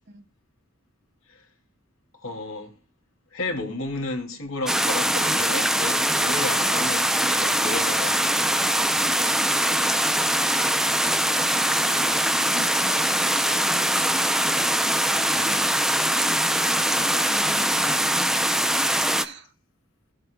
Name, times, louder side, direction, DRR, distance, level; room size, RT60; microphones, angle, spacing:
voice 1, 2.2-2.7 3.3-8.3 15.4-15.7, left 2 dB, 80° left, 2.6 m, -32 dB
sound 1, 4.7-19.2, right 1 dB, ahead, 0.5 m, -22 dB
voice 2, 11.3-12.2 12.5-14.6 16.5-18.8 19.2-19.5, right 3 dB, 60° right, 1.5 m, -43 dB
18.0 x 7.7 x 2.3 m
head